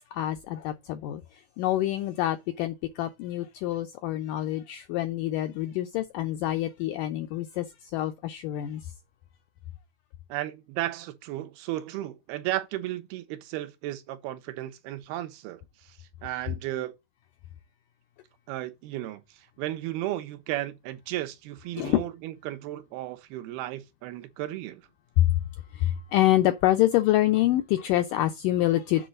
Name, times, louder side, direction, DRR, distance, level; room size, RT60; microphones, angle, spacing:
voice 1, 0.1-8.9 21.8-22.0 25.2-25.4 25.7-29.1, left 14 dB, 85° left, 1.9 m, -26 dB
voice 2, 10.3-16.9 18.5-19.2 19.6-24.8, right 15 dB, 80° right, 2.8 m, -34 dB
7.8 x 3.8 x 6.4 m
omnidirectional pair, 4.5 m